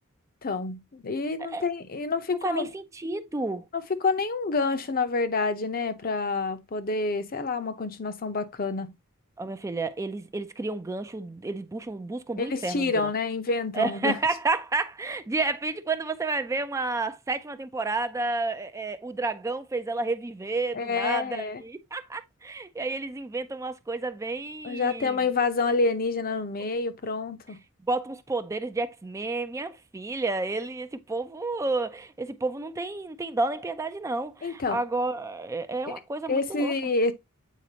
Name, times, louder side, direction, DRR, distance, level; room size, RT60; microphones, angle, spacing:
voice 1, 0.4-2.7 3.7-8.9 12.4-14.2 20.7-21.6 24.6-27.6 34.4-34.8 36.3-37.1, left 3 dB, 45° left, 0.7 m, -28 dB
voice 2, 2.4-3.6 9.4-13.1 13.7-25.2 27.9-36.7, right 3 dB, 15° right, 0.4 m, -31 dB
8.3 x 4.1 x 2.8 m
head